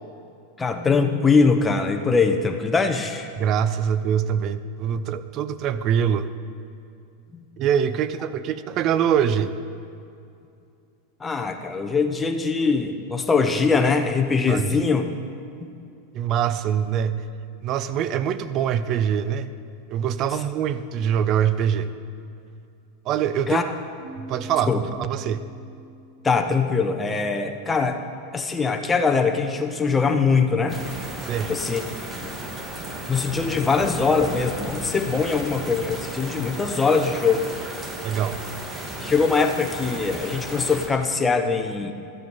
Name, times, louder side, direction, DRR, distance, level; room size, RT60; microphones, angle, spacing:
voice 1, 0.6-3.3 7.3-7.4 11.2-15.1 15.6-15.7 23.5-23.6 24.7-24.8 26.2-28.0 28.3-30.8 31.5-31.8 33.1-37.5 39.0-41.9, left 4 dB, 15° left, 5 dB, 0.9 m, -22 dB
voice 2, 3.4-6.3 7.6-9.5 14.5-14.7 16.1-17.2 17.6-19.5 19.9-21.9 23.1-23.6 24.2-25.5 31.2-31.5 38.0-38.4, right 8 dB, 45° right, 13 dB, 0.5 m, -24 dB
sound 1, 24.0-27.6, equal, 85° right, 2.8 m, -45 dB
sound 2, 30.7-40.9, right 1 dB, 20° right, 1.6 m, -34 dB
12.5 x 7.6 x 5.5 m, 2.5 s
supercardioid pair, 120°, 0 cm